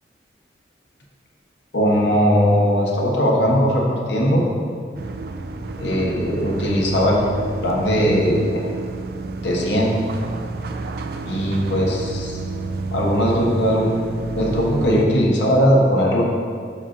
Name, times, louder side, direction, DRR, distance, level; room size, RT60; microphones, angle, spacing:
voice 1, 1.7-4.4 5.8-7.3 7.6-8.5 9.4-9.9 11.2-12.3 12.9-13.9 14.3-16.2, equal, 70° left, -2 dB, 1.3 m, -19 dB
sound 1, 5.0-15.1, right 3 dB, 55° right, 0.4 m, -30 dB
5.9 x 4.3 x 5.8 m, 2.2 s
head